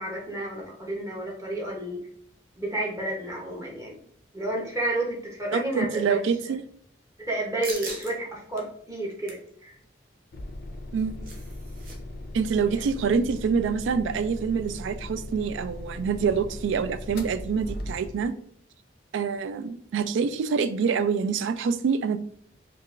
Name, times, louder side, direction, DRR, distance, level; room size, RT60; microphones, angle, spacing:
voice 1, 0.0-2.1 2.6-4.0 4.3-6.2 7.2-9.7 12.6-12.8, right 1 dB, 15° right, -2 dB, 0.8 m, -31 dB
voice 2, 5.5-6.6 10.9-11.3 12.3-18.3 19.1-22.2, right 6 dB, 75° right, 12 dB, 0.3 m, -26 dB
sound 1, 7.6-8.1 8.6-8.7 9.0-9.5 10.8-12.0 12.2-12.3 12.7-12.9, right 3 dB, 50° right, 0.7 m, -40 dB
sound 2, 10.3-18.4, left 1 dB, 55° left, 0.5 m, -38 dB
4.6 x 2.4 x 2.4 m, 0.63 s
head